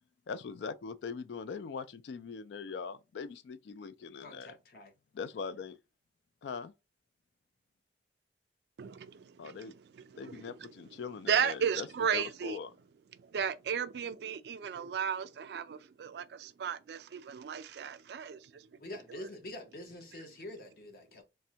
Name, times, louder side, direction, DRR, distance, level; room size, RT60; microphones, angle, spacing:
voice 1, 0.3-4.6 5.1-5.8 6.4-6.7 9.4-9.7 10.2-11.9 12.1-12.7, left 5 dB, 80° left, 0.3 m, -41 dB
voice 2, 4.2-4.9 18.8-21.2, left 1 dB, 55° left, 0.8 m, -46 dB
voice 3, 8.8-10.7 11.3-12.6 13.2-18.7 19.1-19.3, right 7 dB, 65° right, 0.3 m, -35 dB
3.4 x 2.1 x 2.7 m
head